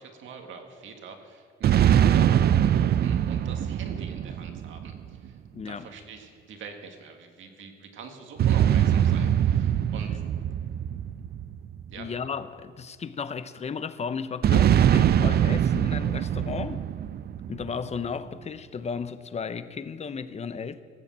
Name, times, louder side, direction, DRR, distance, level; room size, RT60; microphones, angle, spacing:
voice 1, 0.0-5.4 5.7-10.2 11.9-12.1, right 5 dB, 75° right, 1.9 m, -43 dB
sound 1, 1.6-5.3 8.4-12.1 14.4-17.9, right 10 dB, 55° right, 0.5 m, -23 dB
voice 2, 5.5-5.9 12.0-16.9 17.5-20.8, left 6 dB, 35° left, 0.7 m, -34 dB
16.5 x 7.2 x 7.4 m
cardioid pair, 90°, 20 cm